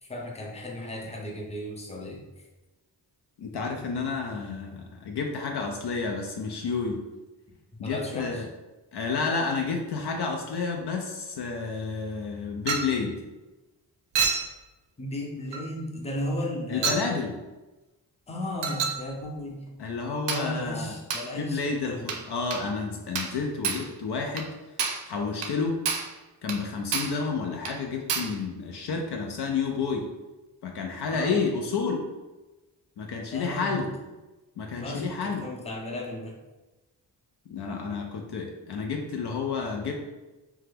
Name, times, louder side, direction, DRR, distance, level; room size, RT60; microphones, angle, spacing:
voice 1, 0.0-2.2 7.8-8.5 15.0-17.1 18.3-19.7 20.3-22.2 31.1-31.4 33.3-33.8 34.7-36.4, left 1 dB, 15° left, -1 dB, 0.6 m, -35 dB
voice 2, 3.4-7.0 7.8-8.5 8.9-13.2 16.7-17.4 19.8-21.0 21.3-24.5 25.1-25.8 26.4-30.1 30.6-32.1 33.0-33.9 34.6-35.5 37.5-39.9, left 4 dB, 65° left, 2 dB, 0.5 m, -30 dB
Chink clink, 12.7-13.0 14.1-14.5 15.5-15.7 16.8-17.1 18.6-19.0 20.3-20.5 21.1-21.3 22.1-22.3 22.5-22.7 23.1-23.4 23.6-23.9 24.4-24.5 24.8-25.1 25.4-25.6 25.8-26.1 26.5-26.6 26.9-27.2 27.6-27.8 28.1-28.4, right 5 dB, 75° right, 0.5 m, -29 dB
2.7 x 2.3 x 3.2 m, 1.1 s
cardioid pair, 55°, 43 cm